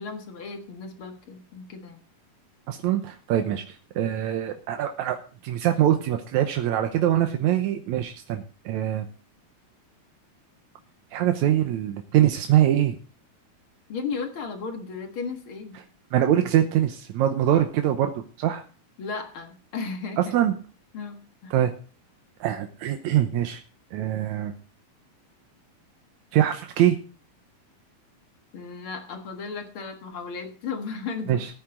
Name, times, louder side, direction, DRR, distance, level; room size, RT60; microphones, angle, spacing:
voice 1, 0.0-2.0 13.9-15.8 19.0-20.3 20.9-21.5 28.5-31.5, left 5 dB, 50° left, 5 dB, 1.8 m, -35 dB
voice 2, 2.7-5.2 5.4-9.1 11.1-13.0 16.1-18.6 20.2-20.5 21.5-21.7 22.4-23.6 23.9-24.5 26.3-27.0 31.3-31.5, right 11 dB, 70° right, 6 dB, 1.9 m, -23 dB
15.5 x 9.5 x 3.8 m, 0.39 s
omnidirectional pair, 4.2 m